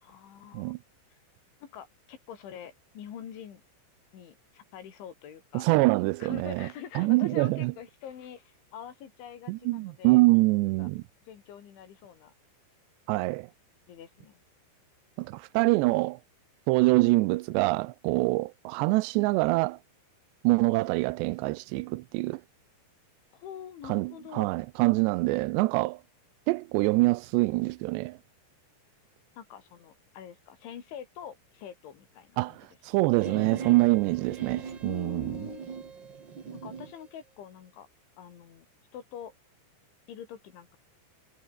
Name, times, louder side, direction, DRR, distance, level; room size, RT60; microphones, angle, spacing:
voice 1, 0.0-0.7 1.6-3.6 4.1-5.7 6.2-10.2 10.8-10.9 11.3-12.3 13.9-14.4 23.3-24.5 29.4-32.6 34.8-35.6 36.5-37.9 38.2-38.7 38.9-39.3 40.1-40.8, left 9 dB, 85° left, 5.5 m, -45 dB
voice 2, 5.5-6.7 7.0-7.7 9.5-11.0 13.1-13.5 15.2-16.2 16.7-19.8 20.4-22.4 23.8-26.0 26.5-28.2 32.4-35.4, right 22 dB, 85° right, 2.6 m, -25 dB
sound 1, 33.2-37.0, right 6 dB, 40° right, 1.7 m, -40 dB
omnidirectional pair, 5.3 m